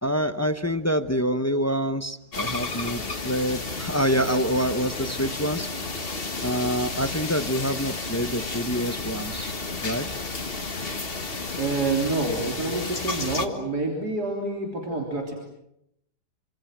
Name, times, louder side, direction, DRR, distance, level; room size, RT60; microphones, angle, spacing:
voice 1, 0.0-5.7 6.4-10.1, equal, 10° left, 10 dB, 0.7 m, -26 dB
sound 1, 2.3-13.5, left 3 dB, 30° left, 2.0 m, -32 dB
voice 2, 11.6-15.3, right 3 dB, 60° right, 1 dB, 4.0 m, -27 dB
27.5 x 26.0 x 7.5 m, 0.80 s
omnidirectional pair, 1.9 m